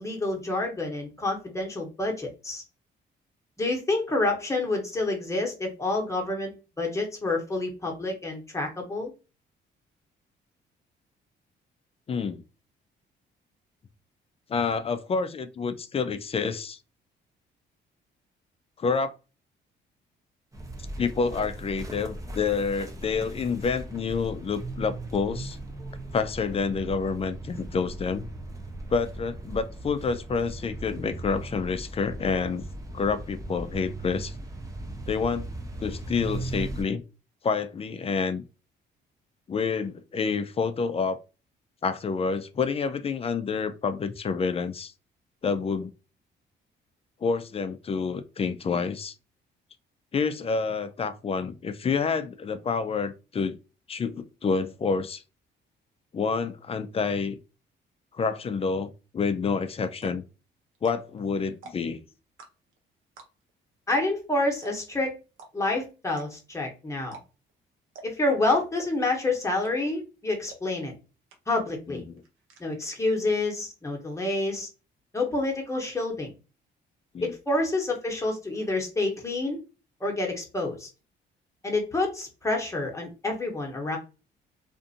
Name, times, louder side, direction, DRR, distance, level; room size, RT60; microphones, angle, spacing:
voice 1, 0.0-2.6 3.6-9.1 63.9-65.1 65.5-67.2 68.0-70.9 71.5-72.0 72.6-74.7 75.1-76.3 77.2-79.6 80.0-80.9 81.6-84.0, left 2 dB, 15° left, 1.0 m, -28 dB
voice 2, 12.1-12.4 14.5-16.8 18.8-19.1 21.0-25.6 26.1-28.3 28.9-32.6 32.9-34.3 35.1-35.5 35.8-37.0 37.4-38.4 39.5-41.2 41.8-44.9 45.4-45.9 47.2-49.1 50.1-53.6 53.9-55.2 56.1-57.4 58.1-60.2 60.8-62.0 71.9-72.2 77.1-77.3, left 5 dB, 30° left, 0.3 m, -28 dB
sound 1, 20.5-36.8, right 2 dB, 15° right, 0.7 m, -38 dB
sound 2, 59.5-59.6 59.9-60.3 60.7-61.2 61.5-62.0 62.4-62.8 63.2-63.5 63.9-64.0 64.2-64.3 64.6-65.0 65.4-65.5 66.1-66.5 67.0-67.2 67.5-67.6 67.9-68.3 68.7-69.1 69.6-70.0 70.5-70.6 70.9-71.0 71.3-71.7 72.0-72.6, right 4 dB, 85° right, 0.7 m, -46 dB
2.5 x 2.4 x 2.6 m
cardioid pair, 90°, 20 cm